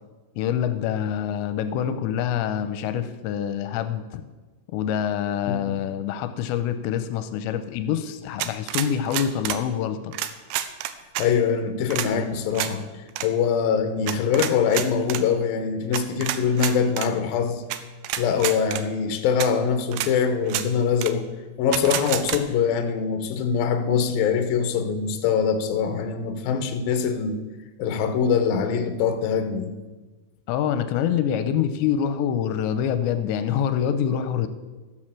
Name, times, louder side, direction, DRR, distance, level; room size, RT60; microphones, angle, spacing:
voice 1, 0.4-4.2 4.7-10.1 30.5-34.5, left 9 dB, 85° left, 10 dB, 2.9 m, -26 dB
sound 1, 8.4-9.6 10.1-11.3 11.9-12.1 12.5-12.7 13.1-13.3 14.1-15.2 15.9-17.1 17.7-17.8 18.0-18.8 19.4-19.5 19.9-20.1 20.5-20.7 21.0-21.1 21.7-22.4, right 12 dB, 80° right, 2.6 m, -28 dB
voice 2, 11.2-12.9 13.2-17.6 18.2-21.3 21.6-27.4 27.8-29.7, left 6 dB, 70° left, 7 dB, 2.4 m, -23 dB
13.5 x 6.5 x 7.5 m, 1.2 s
omnidirectional pair, 5.1 m